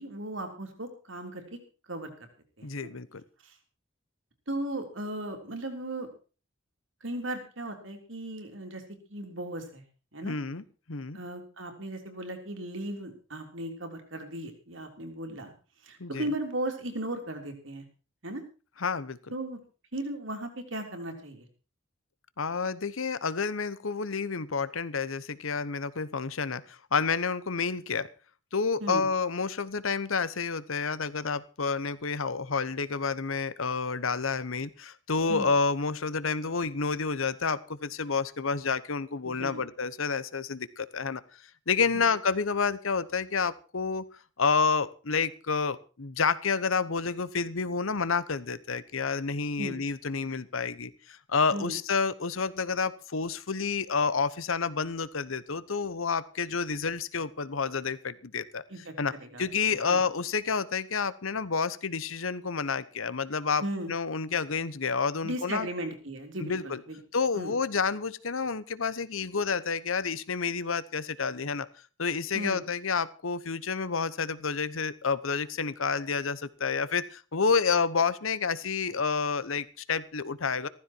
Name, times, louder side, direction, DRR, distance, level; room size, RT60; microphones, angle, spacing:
voice 1, 0.0-1.4 1.9-2.1 2.6-2.9 3.4-3.5 4.5-6.1 7.0-8.8 9.1-9.8 10.1-10.4 11.1-15.5 15.8-17.8 18.2-18.4 19.3-19.6 19.9-21.5 28.8-29.0 35.3-35.5 39.4-39.6 41.9-42.1 49.6-49.8 51.5-51.8 58.7-58.9 59.2-59.4 59.9-60.0 63.6-63.9 65.2-67.0 67.3-67.5 72.3-72.6, right 1 dB, 70° right, 4 dB, 3.5 m, -36 dB
voice 2, 2.6-3.2 10.2-11.2 16.0-16.3 18.8-19.2 22.4-28.1 28.5-41.2 41.7-44.0 44.4-58.6 59.0-59.1 59.4-63.6 63.9-65.7 66.4-66.8 67.1-71.7 72.0-80.7, left 5 dB, 80° left, 16 dB, 1.0 m, -29 dB
15.5 x 14.5 x 4.6 m, 0.36 s
head